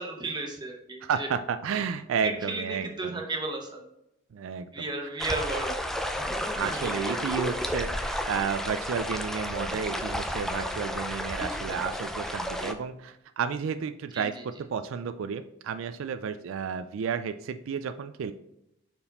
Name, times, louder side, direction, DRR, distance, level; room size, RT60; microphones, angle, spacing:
voice 1, 0.0-1.3 2.2-3.8 4.7-5.8 6.6-7.2 14.1-14.3, right 2 dB, 20° right, 2 dB, 1.0 m, -34 dB
voice 2, 1.0-3.2 4.3-4.9 6.5-18.3, right 6 dB, 80° right, 10 dB, 0.3 m, -32 dB
sound 1, 5.2-12.7, equal, ahead, 0.4 m, -32 dB
5.3 x 4.7 x 4.0 m, 0.82 s
head